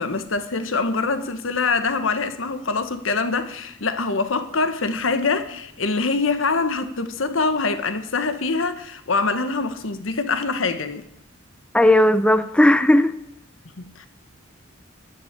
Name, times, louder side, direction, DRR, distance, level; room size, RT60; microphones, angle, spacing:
voice 1, 0.0-11.0 13.8-14.1, left 4 dB, 80° left, 1.2 m, -24 dB
voice 2, 11.7-13.1, left 1 dB, 5° left, 0.5 m, -16 dB
10.5 x 10.5 x 8.1 m
head